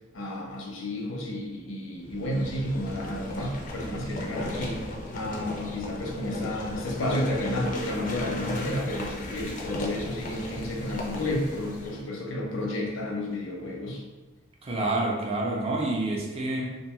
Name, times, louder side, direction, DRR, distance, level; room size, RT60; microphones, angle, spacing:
voice 1, 0.1-14.0, left 1 dB, 90° left, -1 dB, 0.6 m, -31 dB
sound 1, 2.0-12.0, left 1 dB, 40° left, 0.4 m, -36 dB
voice 2, 14.6-16.6, right 2 dB, 30° right, -1 dB, 0.4 m, -28 dB
2.6 x 2.2 x 2.9 m, 1.2 s
head